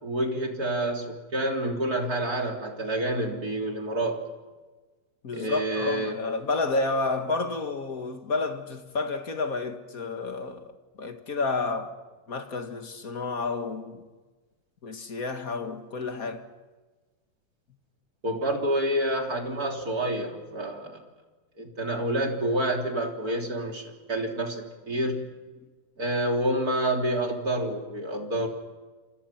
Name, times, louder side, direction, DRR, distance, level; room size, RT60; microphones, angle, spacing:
voice 1, 0.0-4.2 5.3-6.2 18.2-21.0 21.6-25.2 26.0-28.5, right 1 dB, 30° right, 3.7 m, -28 dB
voice 2, 5.2-10.7 11.0-11.9 12.3-14.0 14.8-16.5 25.6-25.7, left 3 dB, 35° left, 1.6 m, -30 dB
29.0 x 27.0 x 5.8 m
omnidirectional pair, 3.7 m